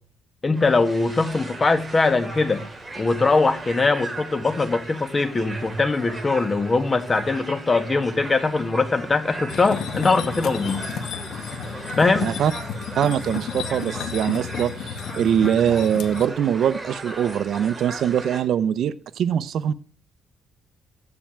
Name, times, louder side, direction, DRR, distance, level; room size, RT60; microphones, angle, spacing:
voice 1, 0.4-2.6 3.0-10.9 12.0-12.3, left 3 dB, 20° left, 9 dB, 1.7 m, -21 dB
sound 1, 0.6-18.4, right 2 dB, 15° right, 2.9 m, -37 dB
sound 2, 9.5-16.3, left 7 dB, 60° left, 1.8 m, -33 dB
voice 2, 12.2-12.5 13.0-19.7, right 9 dB, 55° right, 16 dB, 0.8 m, -22 dB
15.0 x 11.0 x 8.7 m, 0.44 s
cardioid pair, 170°, 0 cm